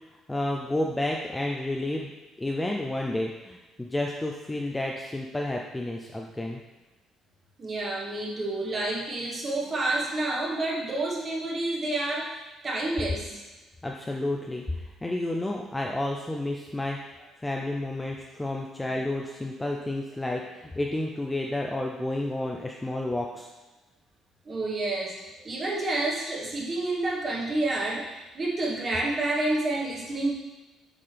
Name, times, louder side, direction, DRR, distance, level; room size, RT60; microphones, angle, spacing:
voice 1, 0.3-2.1 2.4-6.6 13.8-23.5, left 1 dB, 10° left, 0 dB, 0.4 m, -31 dB
voice 2, 7.6-13.4 24.4-25.1 25.4-30.3, right 2 dB, 20° right, -3 dB, 1.4 m, -29 dB
8.5 x 5.7 x 3.4 m, 1.1 s
cardioid pair, 180°, 0 cm